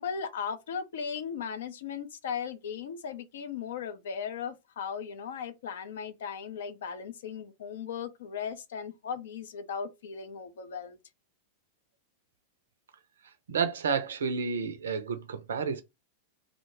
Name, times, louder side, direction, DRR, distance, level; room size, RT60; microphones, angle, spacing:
voice 1, 0.0-11.0, left 7 dB, 60° left, 0.4 m, -37 dB
voice 2, 13.5-15.8, right 5 dB, 65° right, 0.4 m, -30 dB
2.5 x 2.1 x 2.9 m
figure-of-eight pair, 90°, 0 cm